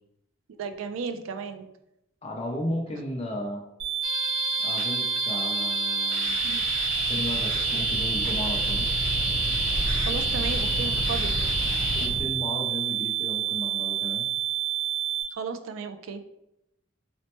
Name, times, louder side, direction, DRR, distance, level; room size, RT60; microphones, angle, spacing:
voice 1, 0.6-1.6 6.4-6.6 10.1-11.3 15.3-16.2, right 5 dB, 85° right, 9 dB, 0.3 m, -34 dB
voice 2, 2.2-3.6 4.6-6.4 7.1-8.9 12.0-14.3, left 1 dB, 30° left, 1 dB, 0.5 m, -34 dB
sound 1, 3.8-15.2, right 12 dB, 65° right, 1.0 m, -29 dB
sound 2, 4.0-12.1, left 7 dB, 85° left, 0.4 m, -31 dB
sound 3, 6.2-12.2, equal, 25° right, 0.8 m, -33 dB
4.2 x 2.1 x 2.9 m, 0.84 s
head